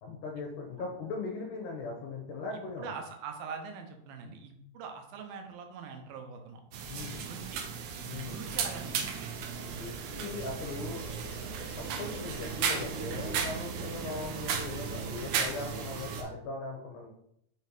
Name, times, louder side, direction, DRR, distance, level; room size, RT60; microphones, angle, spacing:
voice 1, 0.0-2.9 6.9-7.3 8.1-8.5 9.7-11.0 11.5-17.1, left 3 dB, 75° left, 0 dB, 2.2 m, -39 dB
voice 2, 2.8-6.6 7.2-7.6 8.3-9.2, right 5 dB, 90° right, 4 dB, 2.6 m, -43 dB
sound 1, 6.7-16.2, right 6 dB, 75° right, 2.0 m, -35 dB
sound 2, 10.4-16.3, left 3 dB, 55° left, 2.5 m, -57 dB
5.9 x 4.2 x 4.0 m, 0.75 s
omnidirectional pair, 4.1 m